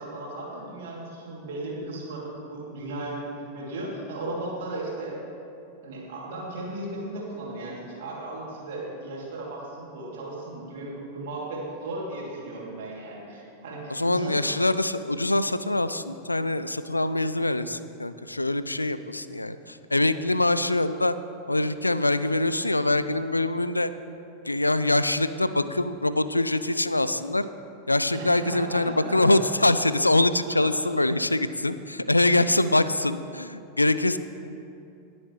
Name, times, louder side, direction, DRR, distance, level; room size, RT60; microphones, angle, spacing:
voice 1, 0.0-5.2 5.8-14.4 28.1-29.4 30.5-30.9, right 2 dB, 55° right, -4 dB, 2.9 m, -36 dB
voice 2, 13.9-21.2 21.5-23.9 24.4-27.4 27.9-34.2, left 2 dB, 85° left, 13 dB, 0.3 m, -24 dB
20.0 x 7.1 x 3.2 m, 2.7 s
figure-of-eight pair, 90°, 0 cm